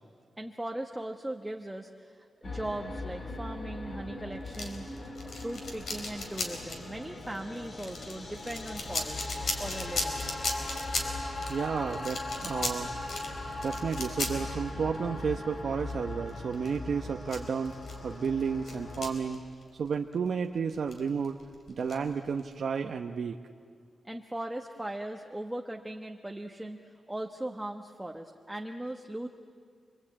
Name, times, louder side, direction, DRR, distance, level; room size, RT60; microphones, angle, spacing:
voice 1, 0.4-5.1 5.4-9.2 9.6-10.2 24.0-29.3, right 1 dB, 10° right, 2 dB, 1.2 m, -39 dB
sound 1, 2.4-19.2, left 2 dB, 45° left, 2.7 m, -39 dB
sound 2, 4.5-19.9 20.1-20.3 20.7-22.5, left 2 dB, 65° left, 4.4 m, -37 dB
voice 2, 11.5-12.9 13.6-17.8 18.0-19.4 19.8-21.4 21.7-23.4, right 6 dB, 65° right, 3 dB, 0.9 m, -32 dB
29.0 x 23.0 x 8.7 m, 2.1 s
wide cardioid pair, 120°, 0 cm